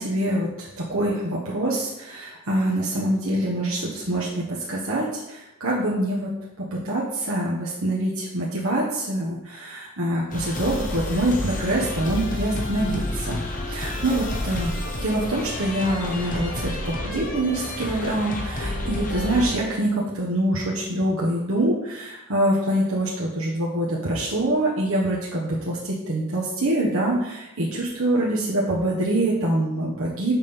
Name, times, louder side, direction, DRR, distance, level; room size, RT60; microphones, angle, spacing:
voice 1, 0.0-13.4 13.7-14.7 15.0-30.3, right 1 dB, 60° right, -5 dB, 1.3 m, -25 dB
sound 1, 10.3-19.5, left 1 dB, 40° left, 1.2 m, -30 dB
6.6 x 5.2 x 5.5 m, 0.92 s
head